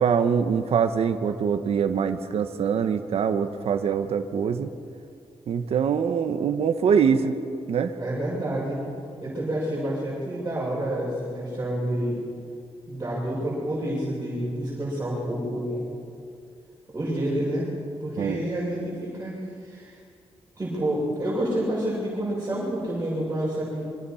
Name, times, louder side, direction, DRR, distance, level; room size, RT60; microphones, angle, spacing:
voice 1, 0.0-4.7 5.5-7.3 7.7-7.9 18.2-18.4, right 7 dB, 70° right, 7 dB, 1.4 m, -23 dB
voice 2, 8.0-8.8 9.2-12.2 12.9-15.8 16.9-17.7 18.0-20.0 20.6-23.9, right 1 dB, 25° right, -7 dB, 7.7 m, -28 dB
28.0 x 24.5 x 5.8 m, 2.4 s
wide cardioid pair, 125°, 11 cm